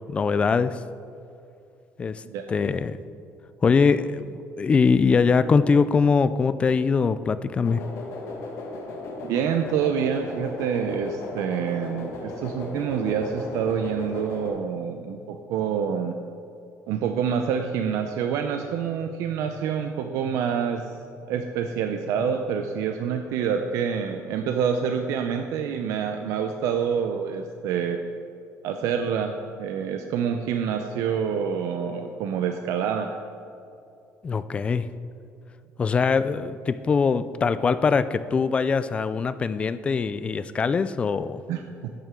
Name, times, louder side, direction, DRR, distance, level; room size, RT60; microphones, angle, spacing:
voice 1, 0.1-0.8 2.0-2.2 2.5-3.0 3.6-7.8 34.2-34.9 35.8-41.4, left 5 dB, 20° left, 13 dB, 0.3 m, -22 dB
sound 1, 7.6-14.5, left 2 dB, 65° left, 1.8 m, -36 dB
voice 2, 9.2-16.2 16.9-20.9 21.3-28.0 28.6-33.2 41.5-42.0, right 7 dB, 75° right, 6 dB, 0.6 m, -27 dB
12.0 x 9.0 x 3.7 m, 2.6 s
cardioid pair, 170°, 5 cm